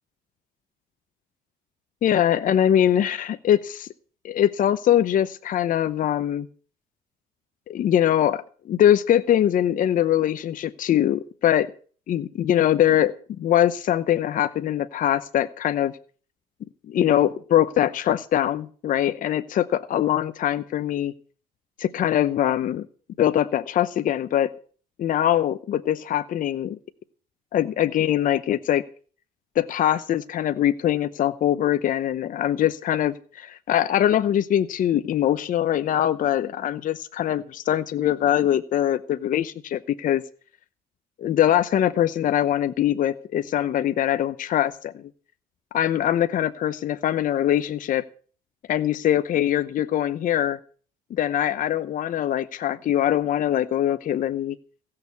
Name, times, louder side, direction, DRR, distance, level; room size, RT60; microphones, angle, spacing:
voice 1, 2.0-3.9 4.2-6.5 7.7-11.7 12.1-13.1 13.4-15.9 16.9-21.1 21.8-22.9 23.2-24.5 25.0-26.8 27.5-28.8 29.6-40.2 41.2-45.1 45.7-48.1 48.7-50.6 51.1-54.6, left 11 dB, 50° left, 12 dB, 0.8 m, -22 dB
16.5 x 6.7 x 8.2 m, 0.43 s
cardioid pair, 110°, 17 cm